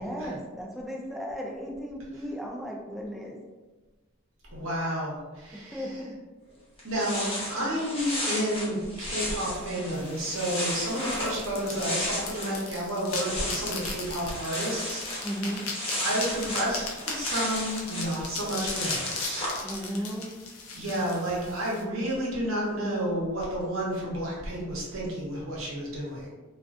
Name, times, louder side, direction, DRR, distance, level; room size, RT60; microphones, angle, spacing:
voice 1, 0.0-3.4 5.7-6.1 15.2-15.6 19.6-20.2, equal, ahead, -3 dB, 0.3 m, -35 dB
voice 2, 4.5-6.0 6.8-15.5 16.0-20.0 20.7-26.3, right 1 dB, 65° right, -5 dB, 0.8 m, -31 dB
sound 1, 6.5-6.6 6.8-12.6 12.9-19.6, left 1 dB, 25° left, 0.7 m, -34 dB
sound 2, 9.9-21.8, left 4 dB, 80° left, 0.5 m, -38 dB
2.4 x 2.4 x 2.4 m, 1.3 s
head